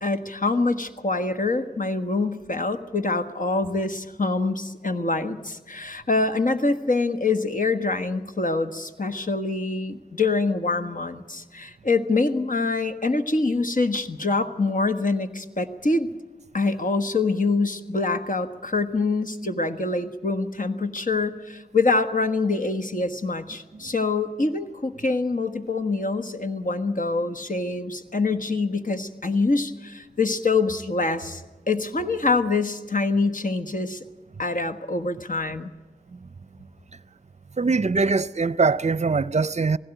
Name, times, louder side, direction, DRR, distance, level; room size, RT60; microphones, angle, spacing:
voice 1, 0.0-16.1 16.5-31.4 31.7-34.0 34.4-35.7, left 3 dB, 55° left, 1.4 m, -25 dB
voice 2, 37.6-39.8, right 4 dB, 45° right, 0.6 m, -22 dB
19.5 x 16.5 x 9.1 m
wide cardioid pair, 45°, 16 cm